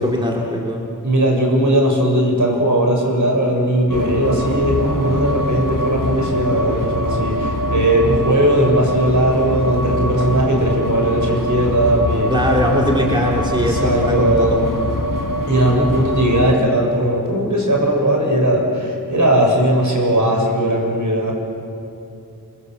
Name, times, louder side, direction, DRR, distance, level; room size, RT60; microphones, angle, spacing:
voice 1, 0.0-0.9 12.3-14.6, equal, 15° right, -2 dB, 3.0 m, -20 dB
voice 2, 1.0-12.3 13.6-14.7 15.5-21.3, right 1 dB, 55° right, 0 dB, 6.7 m, -18 dB
sound 1, 3.9-16.6, left 1 dB, 60° left, 1.4 m, -23 dB
29.5 x 23.5 x 7.9 m, 2.7 s
wide cardioid pair, 60°, 36 cm